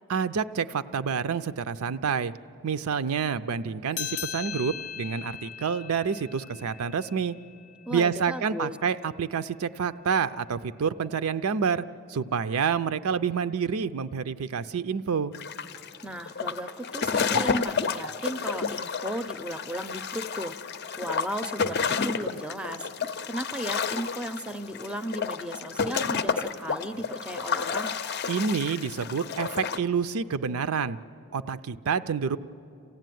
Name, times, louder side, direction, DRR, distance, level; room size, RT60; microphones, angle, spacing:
voice 1, 0.1-2.3 2.6-7.3 7.9-11.8 12.1-15.3 28.3-31.0 31.3-32.4, right 6 dB, 80° right, 12 dB, 0.5 m, -28 dB
sound 1, 3.9-8.8, left 11 dB, 85° left, 0.7 m, -39 dB
voice 2, 7.9-8.8 16.0-20.5 21.0-27.9, right 1 dB, 5° right, 10 dB, 0.5 m, -35 dB
sound 2, 15.3-29.8, left 5 dB, 45° left, 0.6 m, -31 dB
27.5 x 15.5 x 9.2 m, 2.8 s
head